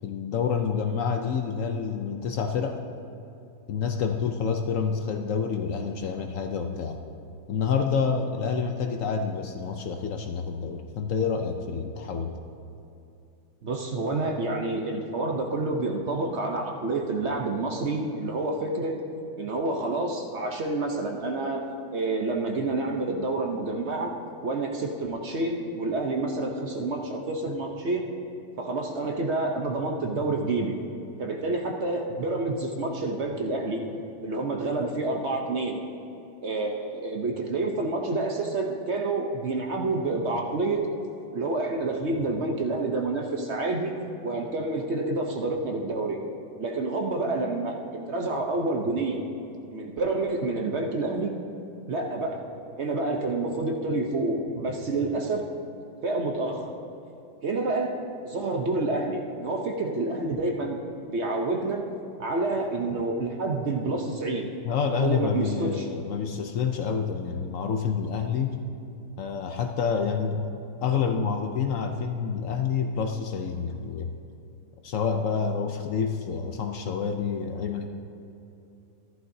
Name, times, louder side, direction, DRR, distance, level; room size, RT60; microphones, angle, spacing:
voice 1, 0.0-2.8 3.7-7.0 7.5-12.4 64.6-68.6 69.2-70.5 70.8-74.1 74.8-77.9, left 6 dB, 65° left, 5 dB, 0.9 m, -28 dB
voice 2, 13.6-19.0 19.4-21.6 21.9-24.1 24.4-28.1 28.6-30.7 31.2-33.8 34.2-35.8 36.4-40.9 41.3-44.0 44.2-46.2 46.6-47.8 48.1-49.2 49.7-51.3 51.9-52.4 52.8-55.4 56.0-56.7 57.4-57.9 58.2-61.8 62.2-64.5 65.0-65.9, right 2 dB, 50° right, 1 dB, 1.0 m, -28 dB
14.5 x 11.5 x 2.7 m, 2.8 s
omnidirectional pair, 1.7 m